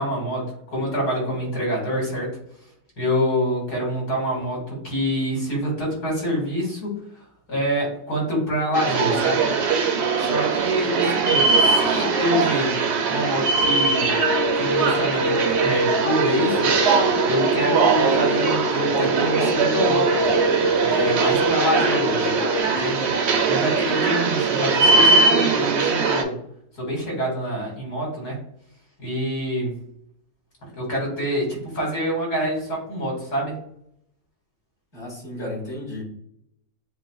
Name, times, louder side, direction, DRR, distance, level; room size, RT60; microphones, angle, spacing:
voice 1, 0.0-2.4 3.0-9.5 10.2-12.8 13.1-14.2 14.5-16.8 17.2-20.4 20.8-22.4 22.6-23.1 23.5-26.4 26.7-28.4 29.0-29.8 30.7-33.5, equal, 65° left, -2 dB, 2.5 m, -26 dB
sound 1, 8.7-26.2, right 4 dB, 65° right, 0.7 m, -21 dB
sound 2, 13.5-22.6, left 1 dB, 15° right, 0.5 m, -26 dB
voice 2, 34.9-36.0, left 1 dB, 40° left, -5 dB, 2.2 m, -33 dB
7.6 x 2.6 x 2.3 m, 0.72 s
omnidirectional pair, 1.8 m